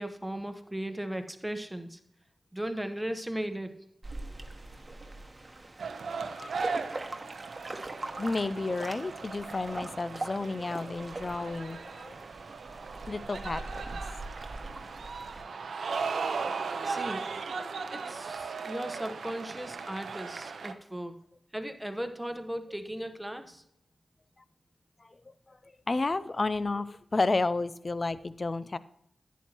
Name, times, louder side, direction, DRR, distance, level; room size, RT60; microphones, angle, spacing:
voice 1, 0.0-2.0 2.5-3.8 16.8-17.3 17.9-21.2 21.5-23.6, right 1 dB, 10° right, 7 dB, 1.1 m, -37 dB
sound 1, 4.0-15.4, right 2 dB, 35° right, 1.2 m, -42 dB
sound 2, 5.8-20.7, right 4 dB, 90° right, 0.6 m, -37 dB
voice 2, 8.1-12.1 13.1-14.0 25.0-25.6 25.9-28.8, left 3 dB, 45° left, 15 dB, 0.5 m, -32 dB
11.0 x 9.2 x 3.0 m, 0.74 s
cardioid pair, 45°, 0 cm